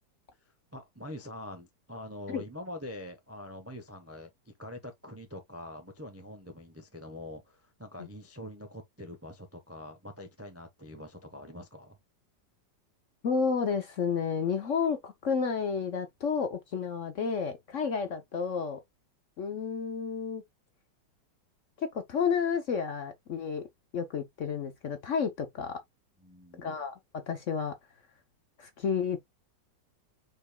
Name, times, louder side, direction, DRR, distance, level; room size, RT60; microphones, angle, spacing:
voice 1, 0.7-12.0 26.2-26.7, left 1 dB, 15° right, 0.5 m, -44 dB
voice 2, 13.2-18.8 19.4-20.4 21.8-23.6 23.9-25.8 26.6-26.9 27.3-27.7 28.6-29.2, left 6 dB, 55° left, 0.9 m, -31 dB
5.1 x 4.6 x 2.2 m
omnidirectional pair, 1.9 m